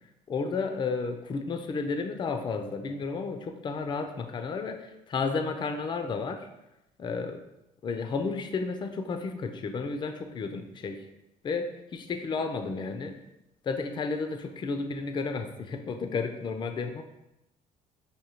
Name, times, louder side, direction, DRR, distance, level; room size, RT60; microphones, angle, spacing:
voice 1, 0.3-6.5 7.0-7.4 7.8-11.0 11.4-13.2 13.6-17.0, left 4 dB, 30° left, 7 dB, 0.4 m, -32 dB
4.8 x 2.6 x 2.9 m, 0.91 s
cardioid pair, 110°, 17 cm